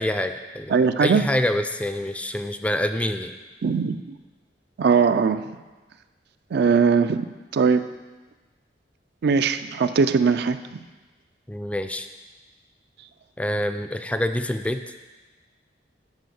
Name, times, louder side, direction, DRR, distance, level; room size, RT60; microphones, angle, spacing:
voice 1, 0.0-0.7 1.0-3.3 11.5-12.1 13.4-14.8, left 1 dB, 5° left, 8 dB, 0.4 m, -26 dB
voice 2, 0.7-1.2 3.6-4.2 4.8-5.4 6.5-7.3 7.5-7.9 9.2-10.8, right 5 dB, 60° right, 10 dB, 0.4 m, -20 dB
9.7 x 4.6 x 6.9 m, 1.3 s
head